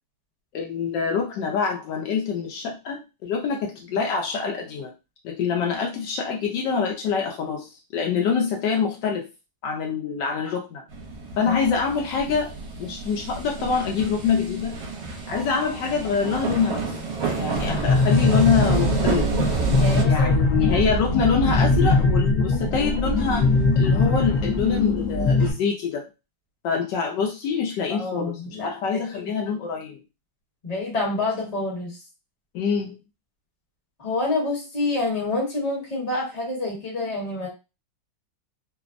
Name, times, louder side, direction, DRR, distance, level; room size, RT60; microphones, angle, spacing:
voice 1, 0.5-4.9 5.2-9.3 9.6-10.8 11.4-12.5 12.8-14.7 15.3-17.0 17.4-19.3 20.0-26.1 26.6-30.0 32.5-33.0, left 6 dB, 75° left, 1 dB, 1.1 m, -25 dB
sound 1, 10.9-20.0, right 4 dB, 75° right, 1.3 m, -30 dB
sound 2, 17.5-25.5, left 2 dB, 55° left, 0.8 m, -21 dB
voice 2, 19.7-21.0 27.9-29.3 30.6-32.0 34.0-37.5, left 2 dB, 25° left, -3 dB, 1.0 m, -28 dB
3.3 x 2.0 x 2.4 m, 0.28 s
omnidirectional pair, 2.0 m